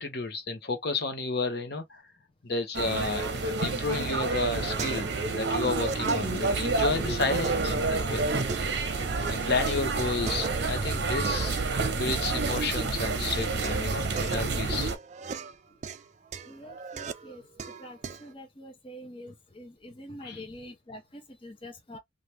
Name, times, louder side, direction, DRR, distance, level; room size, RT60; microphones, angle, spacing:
voice 1, 0.0-2.0 2.4-5.1 5.4-8.2 9.3-14.9 20.2-20.5, left 3 dB, 60° left, 0.9 m, -31 dB
sound 1, 2.7-15.0, right 3 dB, 60° right, 0.8 m, -29 dB
sound 2, 4.1-5.3 5.6-7.0 7.4-9.3 9.6-12.6 13.0-18.3, right 5 dB, 40° right, 0.3 m, -39 dB
voice 2, 16.4-17.5 17.8-22.0, left 1 dB, 30° left, 0.7 m, -45 dB
2.9 x 2.5 x 3.3 m
head